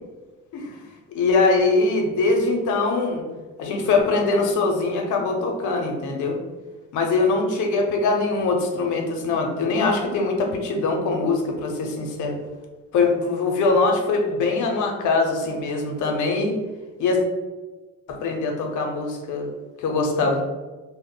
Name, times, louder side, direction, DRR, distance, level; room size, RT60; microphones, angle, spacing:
voice 1, 1.1-3.2 3.6-6.4 6.9-12.4 12.9-16.6 17.0-17.2 18.1-19.5 19.8-20.4, left 3 dB, 80° left, 2 dB, 0.6 m, -22 dB
2.1 x 2.1 x 3.7 m, 1.2 s
cardioid pair, 90°, 30 cm